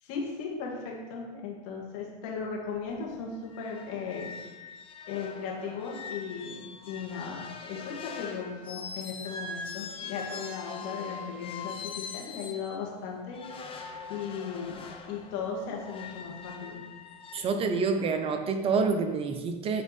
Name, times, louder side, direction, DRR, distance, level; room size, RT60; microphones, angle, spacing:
voice 1, 0.0-4.3 5.1-13.4 14.1-14.8 15.1-16.8, left 5 dB, 60° left, -1 dB, 2.0 m, -37 dB
sound 1, 2.7-2.8 3.1-3.2 3.5-12.7 13.3-17.4, left 5 dB, 25° left, 0.9 m, -42 dB
voice 2, 17.3-19.8, right 4 dB, 30° right, 8 dB, 0.5 m, -27 dB
8.9 x 3.6 x 4.1 m, 1.2 s
supercardioid pair, 120°, 21 cm